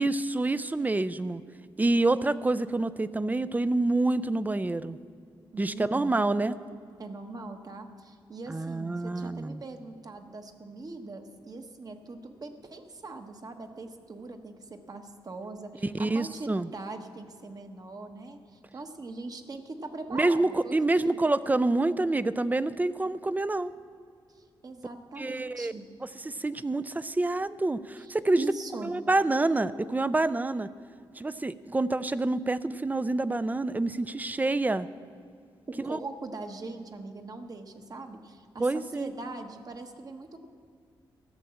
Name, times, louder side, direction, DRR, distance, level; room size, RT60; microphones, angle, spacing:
voice 1, 0.0-1.4 1.8-5.0 5.6-6.5 8.5-9.6 15.8-16.7 20.1-23.7 25.2-25.7 26.2-28.5 28.8-30.7 31.2-34.9 35.8-36.0 38.6-39.1, right 2 dB, 20° right, 15 dB, 0.5 m, -27 dB
voice 2, 5.5-6.2 7.0-21.3 24.3-25.9 28.0-28.9 35.7-40.4, right 3 dB, 45° right, 6 dB, 1.2 m, -41 dB
14.5 x 8.5 x 7.1 m, 2.3 s
cardioid pair, 75°, 9 cm